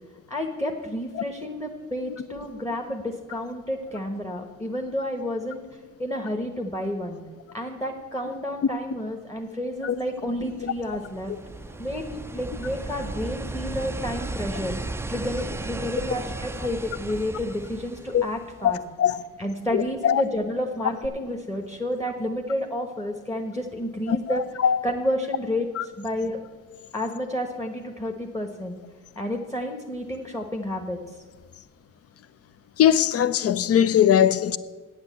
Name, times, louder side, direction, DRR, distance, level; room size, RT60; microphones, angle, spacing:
voice 1, 0.3-5.6 6.0-7.2 7.5-11.3 11.8-14.7 15.1-18.8 19.4-24.4 24.8-25.7 26.0-26.4 26.9-28.8 29.1-31.0, left 1 dB, 10° left, 1.2 m, -30 dB
sound 1, 10.4-18.9 21.0-21.1, right 2 dB, 10° right, 0.4 m, -35 dB
voice 2, 18.6-19.2 19.7-20.2 24.1-24.8 25.8-25.9 32.8-34.6, left 9 dB, 50° left, 0.6 m, -21 dB
8.7 x 8.1 x 8.2 m
cardioid pair, 90°, 30 cm